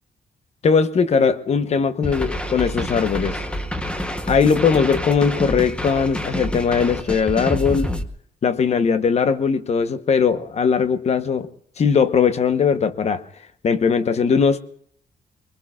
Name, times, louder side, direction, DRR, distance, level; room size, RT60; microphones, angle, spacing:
voice 1, 0.6-3.4 4.3-7.9 8.4-11.5 11.8-13.2 13.6-14.6, left 6 dB, 40° left, 1.0 m, -19 dB
sound 1, 2.0-8.0, equal, 5° left, 0.9 m, -27 dB
24.5 x 23.0 x 2.4 m
wide cardioid pair, 180°, 17 cm